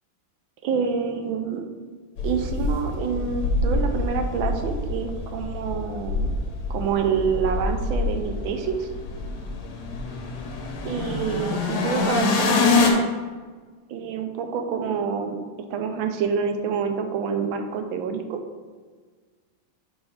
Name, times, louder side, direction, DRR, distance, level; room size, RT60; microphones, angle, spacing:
voice 1, 0.6-1.6 2.2-6.3 6.7-8.9 10.8-13.0 13.9-15.4 15.7-18.4, right 6 dB, 75° right, 5 dB, 1.4 m, -27 dB
sound 1, 2.2-12.9, left 3 dB, 85° left, 1.8 m, -26 dB
5.6 x 4.3 x 5.7 m, 1.5 s
omnidirectional pair, 2.4 m